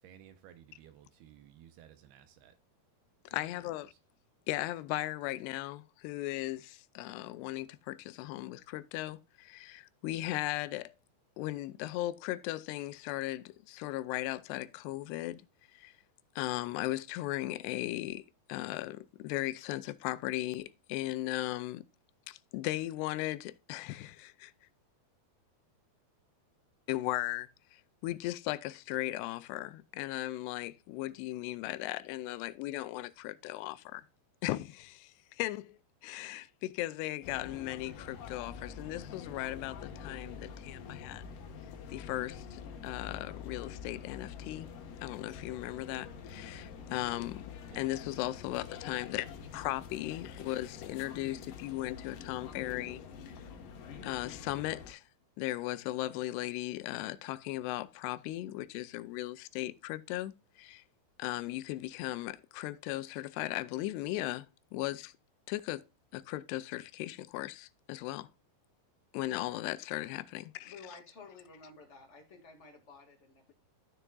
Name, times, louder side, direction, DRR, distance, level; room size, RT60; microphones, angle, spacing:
voice 1, 0.0-2.5 3.3-3.4 47.7-47.8, right 10 dB, 80° right, 2.7 m, -56 dB
voice 2, 3.3-3.9 4.5-11.0 11.4-15.5 15.7-15.9 16.4-21.8 22.3-24.5 26.9-34.1 34.4-41.3 41.9-44.7 45.0-47.5 47.7-49.3 49.5-53.0 54.0-55.0 55.4-60.8 61.2-64.5 64.7-65.1 65.5-65.9 66.1-68.3 69.1-71.0, left 16 dB, 85° left, 2.7 m, -37 dB
sound 1, 37.2-54.9, left 6 dB, 65° left, 2.7 m, -46 dB
voice 3, 70.6-73.5, left 4 dB, 40° left, 1.0 m, -53 dB
13.0 x 6.7 x 2.3 m
omnidirectional pair, 4.7 m